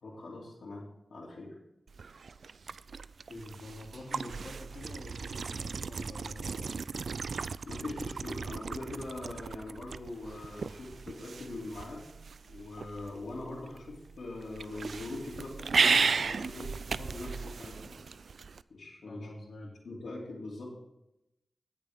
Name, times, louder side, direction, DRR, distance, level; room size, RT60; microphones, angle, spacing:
voice 1, 0.0-1.6 7.6-12.0 12.4-16.7 17.0-18.0 18.7-19.3 19.8-20.6, left 2 dB, 90° left, -5 dB, 3.0 m, -42 dB
sound 1, 1.9-18.6, right 5 dB, 80° right, 0.3 m, -35 dB
voice 2, 3.3-7.0 19.0-20.0, left 1 dB, 70° left, -3 dB, 2.9 m, -46 dB
18.0 x 6.8 x 3.7 m, 0.86 s
wide cardioid pair, 70°, 0 cm